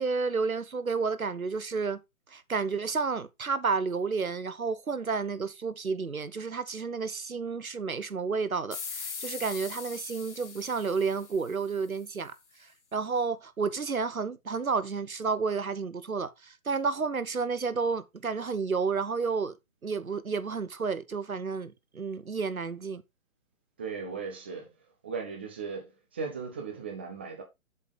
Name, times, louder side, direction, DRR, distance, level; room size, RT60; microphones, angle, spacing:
voice 1, 0.0-2.0 2.3-12.3 12.9-19.6 19.8-23.0, right 5 dB, 75° right, 1.3 m, -31 dB
sound 1, 8.7-12.0, left 5 dB, 55° left, 2.2 m, -41 dB
voice 2, 23.8-24.7 25.0-27.4, right 5 dB, 10° right, 0.6 m, -37 dB
7.6 x 5.2 x 4.9 m
figure-of-eight pair, 135°, 42 cm